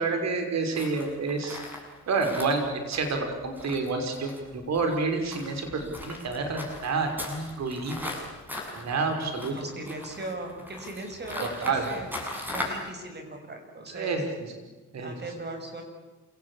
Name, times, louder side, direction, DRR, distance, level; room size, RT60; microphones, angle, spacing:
voice 1, 0.0-1.6 2.1-8.1 8.7-9.5 11.6-11.9 13.9-14.3 14.9-15.1, right 4 dB, 60° right, 5 dB, 5.8 m, -29 dB
sound 1, 0.7-12.9, left 1 dB, 5° right, 7.5 m, -39 dB
voice 2, 9.1-12.1 12.5-14.2 15.0-15.8, right 2 dB, 35° right, 5 dB, 6.7 m, -39 dB
28.0 x 18.5 x 8.8 m, 1.2 s
cardioid pair, 90°, 30 cm